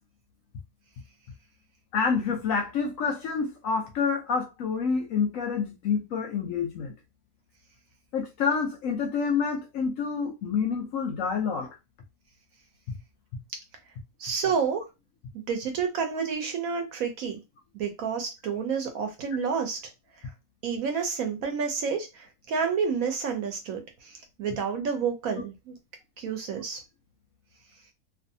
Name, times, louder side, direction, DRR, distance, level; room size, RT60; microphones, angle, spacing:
voice 1, 1.9-6.9 8.1-11.8 12.9-13.0, left 5 dB, 70° left, 0.8 m, -28 dB
voice 2, 14.2-14.8 15.3-17.4 17.7-19.8 20.2-20.3 20.6-25.7 26.2-26.8, right 6 dB, 65° right, 1.0 m, -29 dB
2.5 x 2.5 x 2.6 m
omnidirectional pair, 1.7 m